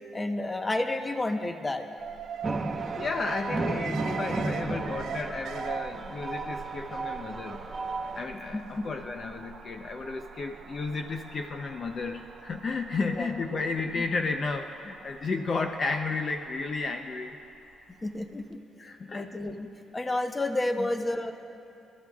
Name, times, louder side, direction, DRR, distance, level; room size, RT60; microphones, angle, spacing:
voice 1, 0.1-1.9 8.5-8.9 13.2-13.3 14.0-14.1 18.0-18.6 19.1-19.7 19.9-21.3, left 2 dB, 20° left, 6 dB, 1.0 m, -30 dB
Alarm, 2.0-18.1 18.4-18.5, right 7 dB, 70° right, 0.5 m, -43 dB
sound 1, 2.4-8.3, right 3 dB, 30° right, 1.3 m, -34 dB
voice 2, 2.7-7.6 8.1-17.4 18.8-19.3 20.8-20.9, left 4 dB, 45° left, 5 dB, 0.6 m, -33 dB
28.5 x 13.5 x 2.4 m, 2.6 s
cardioid pair, 90°, 0 cm